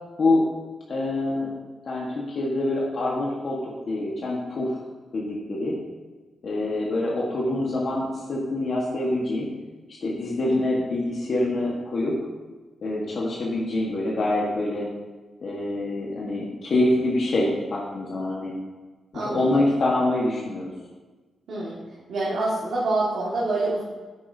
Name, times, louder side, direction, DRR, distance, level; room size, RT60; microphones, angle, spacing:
voice 1, 0.9-1.5 1.8-3.6 3.9-4.8 5.1-5.7 6.4-9.5 9.9-12.1 12.8-14.9 15.4-18.5 19.1-20.7, left 2 dB, 55° left, -4 dB, 1.4 m, -25 dB
voice 2, 19.1-19.6 21.5-23.8, right 2 dB, 80° right, -7 dB, 1.9 m, -27 dB
10.0 x 8.6 x 2.7 m, 1.3 s
wide cardioid pair, 130°, 0 cm